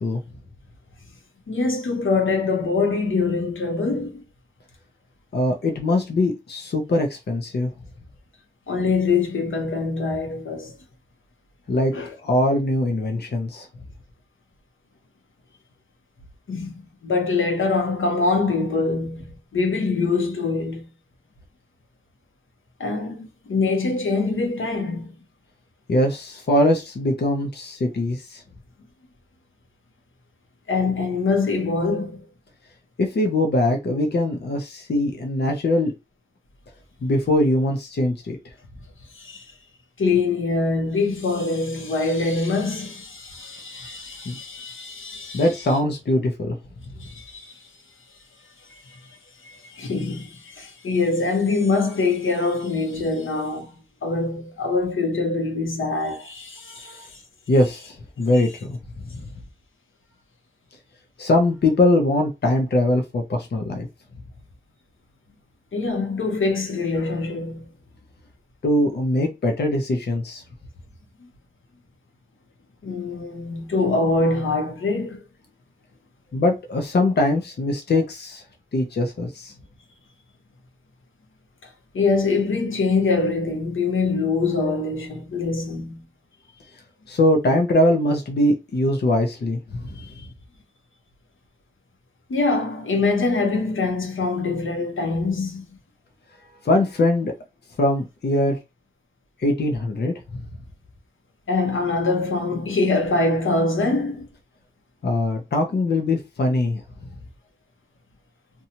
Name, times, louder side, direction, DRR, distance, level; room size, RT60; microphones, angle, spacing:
voice 1, 1.5-4.2 8.7-10.8 11.9-12.1 16.5-16.7 17.0-19.2 19.5-20.9 22.8-25.1 30.7-32.2 39.1-39.5 40.0-45.5 47.0-47.7 48.8-49.0 49.4-53.7 54.0-57.2 58.3-58.4 65.7-67.7 71.2-71.3 72.8-75.2 81.9-86.0 92.3-95.6 101.5-104.3, left 3 dB, 85° left, 0.8 m, -24 dB
voice 2, 5.3-7.7 11.7-11.9 12.2-13.7 25.9-28.4 33.0-35.9 37.0-38.4 44.3-44.4 45.3-46.6 56.8-57.1 57.5-58.8 61.2-63.9 68.6-70.4 76.3-78.4 78.7-79.5 87.1-90.2 96.6-97.3 97.8-98.6 99.4-100.4 105.0-106.8, left 1 dB, 60° left, 0.6 m, -22 dB
2.7 x 2.2 x 2.8 m
wide cardioid pair, 105°, 20 cm